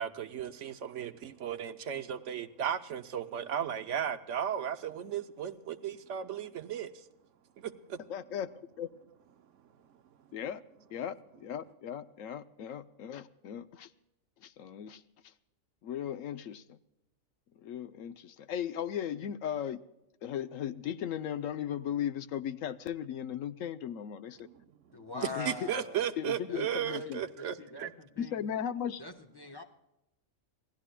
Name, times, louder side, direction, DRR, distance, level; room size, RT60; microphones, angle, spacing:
voice 1, 0.0-6.9 7.6-8.0 24.4-24.5 25.4-27.9, right 9 dB, 70° right, 8 dB, 1.0 m, -35 dB
voice 2, 8.1-8.5 8.8-8.9 10.3-10.6 10.9-13.9 14.4-15.0 15.8-16.8 17.6-19.8 20.2-24.5 25.1-25.7 26.2-27.2 28.2-29.0, left 9 dB, 80° left, 12 dB, 1.0 m, -37 dB
voice 3, 24.9-26.0 26.5-28.5 29.0-29.6, left 2 dB, 20° left, 5 dB, 1.0 m, -44 dB
27.5 x 17.0 x 2.2 m, 0.90 s
omnidirectional pair, 1.4 m